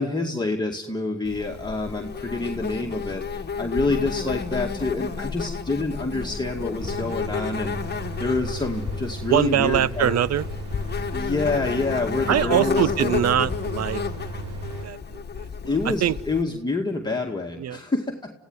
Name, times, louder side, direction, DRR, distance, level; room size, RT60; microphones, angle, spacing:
voice 1, 0.0-10.2 11.1-13.1 15.7-18.3, left 3 dB, 15° left, 0 dB, 2.1 m, -27 dB
Insect, 1.2-16.4, left 5 dB, 35° left, 1.6 m, -31 dB
sound 1, 6.8-14.9, right 2 dB, 80° right, 3.5 m, -36 dB
voice 2, 9.3-10.5 12.3-14.0 14.8-15.7 16.0-16.2 17.6-17.8, right 10 dB, 60° right, 19 dB, 0.8 m, -23 dB
29.0 x 16.5 x 9.6 m, 1.1 s
cardioid pair, 90°, 30 cm